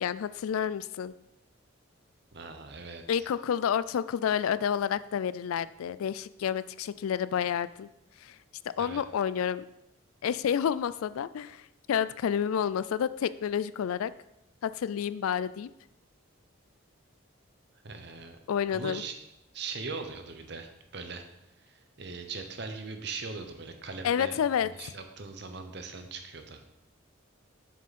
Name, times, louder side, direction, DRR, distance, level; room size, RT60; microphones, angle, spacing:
voice 1, 0.0-1.1 3.1-7.9 8.2-8.4 8.8-9.7 10.2-14.1 14.6-15.7 18.5-19.0 24.0-24.9, left 8 dB, 90° left, 16 dB, 0.3 m, -29 dB
voice 2, 2.3-3.0 8.8-9.0 17.8-18.4 18.7-19.2 19.5-21.2 21.7-24.4 24.6-26.6, right 4 dB, 55° right, 6 dB, 0.9 m, -40 dB
7.4 x 6.2 x 4.2 m, 0.85 s
head